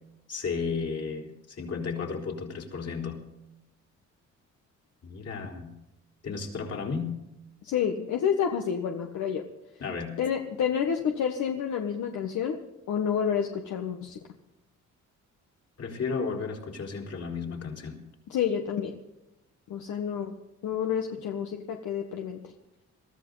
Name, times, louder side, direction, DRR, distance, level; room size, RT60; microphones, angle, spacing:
voice 1, 0.3-3.2 5.0-5.7 6.2-7.1 9.8-10.2 15.8-18.0, left 5 dB, 55° left, 0 dB, 4.1 m, -33 dB
voice 2, 7.6-9.4 10.2-12.6 12.9-14.2 18.3-19.0 19.7-20.3 20.6-22.4, left 8 dB, 75° left, 3 dB, 1.4 m, -29 dB
22.5 x 14.0 x 4.0 m, 0.93 s
cardioid pair, 90°, 30 cm